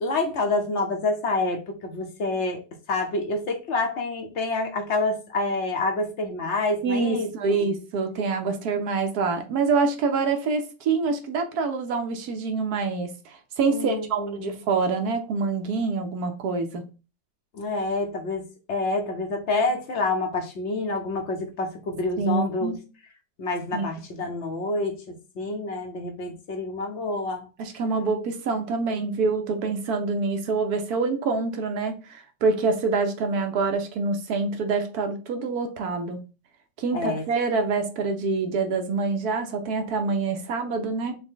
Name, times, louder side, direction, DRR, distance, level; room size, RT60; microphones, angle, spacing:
voice 1, 0.0-2.6 2.9-7.7 13.7-14.6 17.5-22.7 23.4-27.5 36.9-37.2, left 2 dB, 50° left, 0.9 m, -28 dB
voice 2, 6.8-16.8 22.2-22.8 23.7-23.9 27.6-36.2 36.8-41.1, right 4 dB, 70° right, 1.2 m, -26 dB
6.0 x 2.2 x 3.6 m
omnidirectional pair, 1.8 m